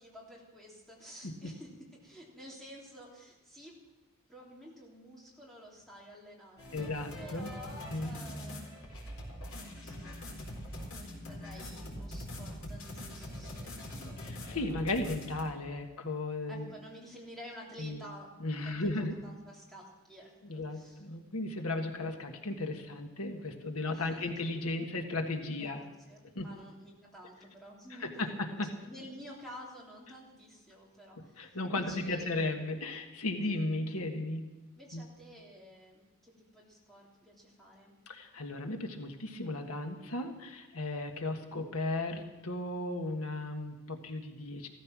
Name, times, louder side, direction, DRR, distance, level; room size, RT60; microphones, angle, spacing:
voice 1, 0.0-3.8 4.3-9.0 9.6-14.2 16.5-18.3 18.6-21.0 23.9-24.3 25.6-25.8 26.1-28.2 28.8-32.4 33.4-33.6 34.7-37.9, equal, ahead, -4 dB, 3.3 m, -51 dB
sound 1, 6.6-15.4, left 1 dB, 70° left, 4.1 m, -43 dB
voice 2, 6.7-7.5 7.9-8.2 14.2-16.6 17.8-18.0 18.4-19.1 20.4-25.8 26.3-26.4 28.0-28.1 28.6-28.7 31.4-34.4 34.9-35.0 38.1-44.7, left 2 dB, 85° left, 5 dB, 1.5 m, -35 dB
15.5 x 14.0 x 6.1 m, 1.1 s
head